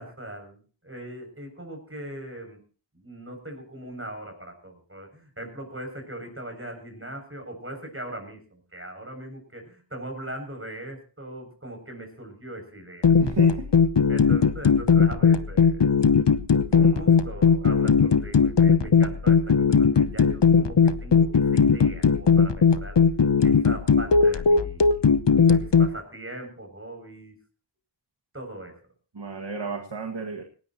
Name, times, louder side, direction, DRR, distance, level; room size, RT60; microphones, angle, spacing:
voice 1, 0.0-2.6 2.9-13.1 14.1-15.9 16.7-23.0 23.4-25.0 25.5-27.3 28.3-28.8, right 1 dB, 30° right, 5 dB, 7.0 m, -40 dB
sound 1, 13.0-25.9, left 6 dB, 65° left, 0.9 m, -19 dB
voice 2, 13.2-13.7 16.8-16.9 29.1-30.4, right 4 dB, 65° right, 4 dB, 2.1 m, -33 dB
19.0 x 18.0 x 3.0 m, 0.39 s
wide cardioid pair, 45°, 46 cm